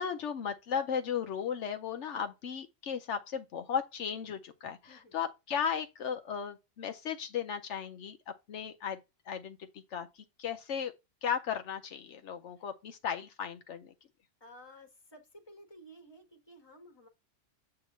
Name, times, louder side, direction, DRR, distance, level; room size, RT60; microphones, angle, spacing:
voice 1, 0.0-9.0 9.3-9.6 9.9-10.9 11.2-13.9, left 7 dB, 75° left, 1.0 m, -36 dB
voice 2, 14.4-17.1, equal, 20° left, 1.5 m, -54 dB
7.6 x 2.9 x 5.4 m
omnidirectional pair, 1.2 m